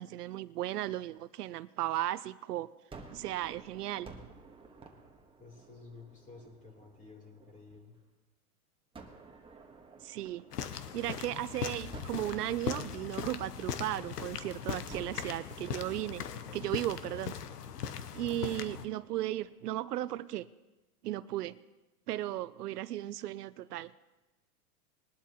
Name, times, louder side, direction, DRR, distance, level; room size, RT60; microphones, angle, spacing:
voice 1, 0.0-2.7 3.1-4.1 10.0-16.2 16.5-17.3 18.1-20.5 21.0-21.6 22.1-23.9, right 14 dB, 80° right, 16 dB, 0.6 m, -36 dB
Gunshot gunfire, 2.9-8.0 8.9-11.4 11.9-14.4 14.9-20.1, right 3 dB, 10° right, 1.4 m, -54 dB
voice 2, 5.4-8.0, left 4 dB, 15° left, 1 dB, 3.4 m, -52 dB
sound 1, 10.5-18.9, left 8 dB, 85° left, 1.1 m, -39 dB
21.0 x 11.5 x 3.0 m, 1.1 s
hypercardioid pair, 115°, 46 cm